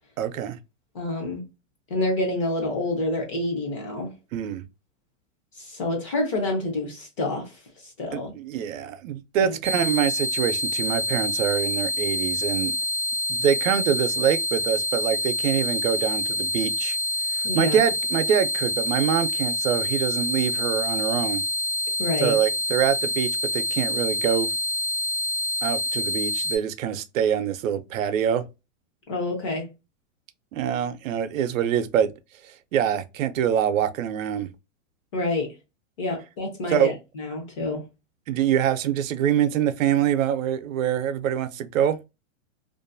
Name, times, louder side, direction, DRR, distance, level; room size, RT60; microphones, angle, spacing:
voice 1, 0.2-0.6 4.3-4.6 8.1-12.7 13.3-17.0 17.5-21.4 22.2-24.5 25.6-28.4 30.5-32.1 32.7-34.5 36.7-36.9 38.3-42.0, right 9 dB, 90° right, 0.6 m, -25 dB
voice 2, 0.9-1.4 1.9-4.1 5.6-7.5 7.8-8.3 9.4-9.5 17.4-17.8 22.0-22.3 29.1-29.7 35.1-35.5 36.0-37.8, left 2 dB, 25° left, 0.5 m, -28 dB
sound 1, 9.6-26.6, left 1 dB, 25° right, 0.4 m, -27 dB
2.5 x 2.3 x 2.5 m
supercardioid pair, 175°, 38 cm